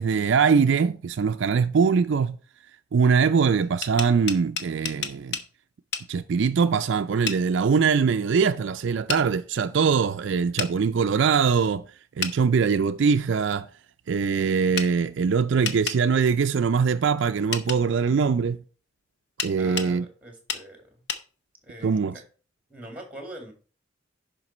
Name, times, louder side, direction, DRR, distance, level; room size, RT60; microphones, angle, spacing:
voice 1, 0.0-2.4 2.9-5.4 6.1-11.8 12.2-13.7 14.1-18.6 19.4-20.0 21.8-22.2, right 5 dB, 60° right, 0.4 m, -22 dB
sound 1, 3.6-5.5 5.9-6.1 7.3-7.4 9.1-9.2 10.6-10.7 12.2-12.4 14.8-14.9 15.6-16.0 17.5-17.8 19.4-19.9 20.5-20.6 21.1-21.2, left 6 dB, 55° left, 0.9 m, -30 dB
voice 2, 19.6-21.0 21.6-22.2 22.7-23.5, right 1 dB, 5° right, 2.1 m, -42 dB
11.0 x 5.1 x 4.2 m
head